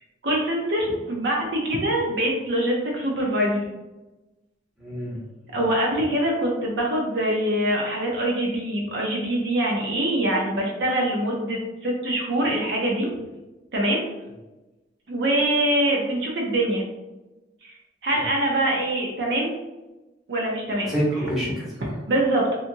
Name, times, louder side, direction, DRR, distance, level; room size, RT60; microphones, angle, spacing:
voice 1, 0.2-3.6 5.5-13.1 13.7-14.0 15.1-16.8 17.6-17.7 18.0-19.5 20.3-20.9 22.1-22.5, right 1 dB, 65° right, -2 dB, 0.6 m, -24 dB
voice 2, 4.8-5.6 18.1-18.2 20.8-21.9, equal, ahead, -9 dB, 0.9 m, -28 dB
2.8 x 2.4 x 2.6 m, 1.1 s
head